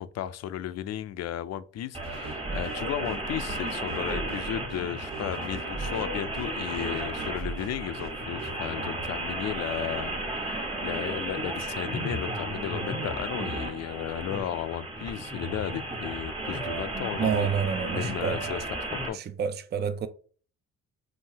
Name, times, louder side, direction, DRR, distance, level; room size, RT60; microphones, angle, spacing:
voice 1, 0.0-10.1 10.4-17.5 17.8-18.6 18.9-19.2, left 11 dB, 60° left, 0.4 m, -34 dB
sound 1, 1.9-19.1, right 1 dB, 15° right, 1.2 m, -34 dB
sound 2, 2.0-8.6, right 3 dB, 90° right, 1.8 m, -40 dB
voice 2, 17.1-18.5 19.1-20.1, right 7 dB, 35° right, 0.4 m, -29 dB
5.5 x 2.7 x 2.8 m
cardioid pair, 90°, 30 cm